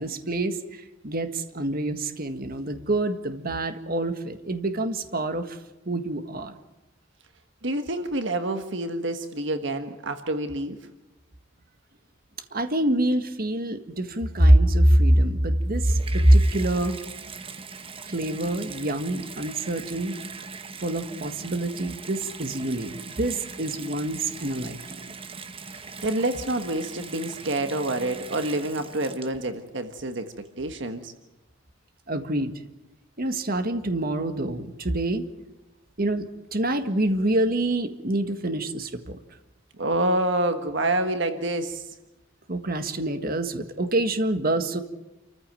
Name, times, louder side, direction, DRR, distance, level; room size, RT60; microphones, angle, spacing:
voice 1, 0.0-5.6 5.8-6.5 12.5-17.0 18.1-20.2 20.8-22.9 23.2-25.1 32.1-32.5 33.2-35.3 36.0-39.2 42.5-44.8, right 1 dB, 45° right, 8 dB, 1.7 m, -25 dB
voice 2, 7.6-10.8 26.0-31.1 39.8-41.8, right 1 dB, 65° right, 8 dB, 1.5 m, -27 dB
Water tap faucet / Bathtub (filling or washing), 15.6-29.7 30.4-30.5, right 5 dB, 30° right, 1.1 m, -41 dB
28.5 x 15.0 x 9.0 m, 0.99 s
head